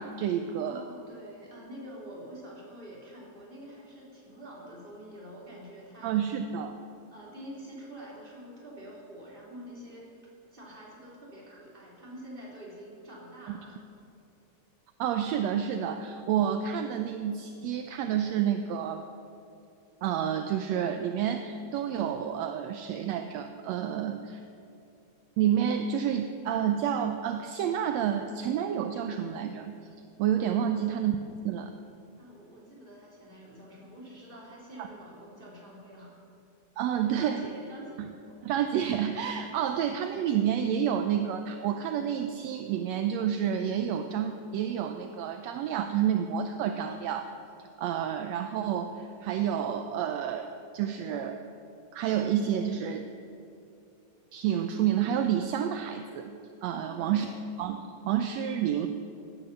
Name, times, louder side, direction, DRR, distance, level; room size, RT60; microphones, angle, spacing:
voice 1, 0.0-0.8 6.0-6.8 13.5-13.6 15.0-19.1 20.0-24.4 25.4-29.8 30.2-31.2 31.5-31.7 34.8-34.9 36.8-37.4 38.0-38.1 38.4-47.3 47.6-51.4 51.9-53.1 54.3-56.3 56.6-57.3 57.6-58.9, right 9 dB, 75° right, 7 dB, 1.8 m, -29 dB
voice 2, 0.7-6.4 7.1-10.1 10.5-13.8 32.2-36.1 36.9-38.4 56.7-57.4, equal, 15° right, -5 dB, 3.6 m, -46 dB
17.0 x 10.0 x 6.8 m, 2.7 s
omnidirectional pair, 3.3 m